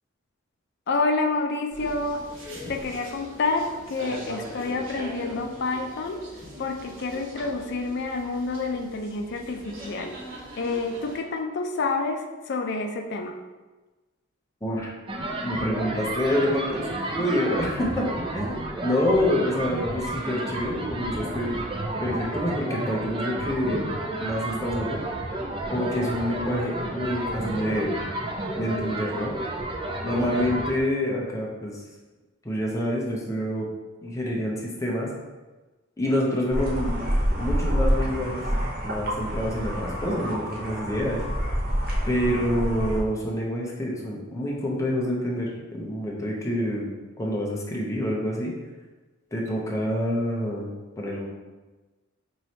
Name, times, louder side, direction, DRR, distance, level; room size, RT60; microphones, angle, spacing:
voice 1, 0.9-2.2 2.7-6.2 6.6-10.1 10.6-13.3, left 3 dB, 55° left, 3 dB, 0.5 m, -28 dB
sound 1, 1.7-11.2, equal, 75° right, 1.1 m, -40 dB
voice 2, 14.6-14.9 15.4-21.6 22.0-23.9 24.2-25.0 25.7-27.9 28.5-29.3 30.0-31.8 32.4-33.7 34.0-35.1 36.0-37.1 37.4-38.4 38.8-41.3 42.1-46.9 47.2-48.5 49.3-50.7 51.0-51.3, equal, 15° left, -3 dB, 0.6 m, -27 dB
sound 2, 15.1-30.8, right 1 dB, 25° right, 0.4 m, -31 dB
sound 3, 36.5-43.0, equal, 50° right, 0.8 m, -27 dB
4.7 x 3.1 x 2.8 m, 1.2 s
head